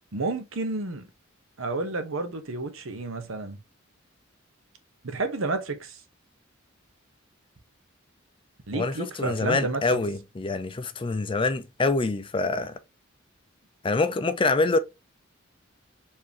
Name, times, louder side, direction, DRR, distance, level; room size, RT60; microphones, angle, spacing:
voice 1, 0.1-1.1 1.6-3.6 5.0-6.0 8.7-9.8, right 3 dB, 75° right, 0.9 m, -30 dB
voice 2, 8.7-12.7 13.8-14.8, left 3 dB, 25° left, 0.5 m, -25 dB
4.6 x 3.6 x 2.9 m
head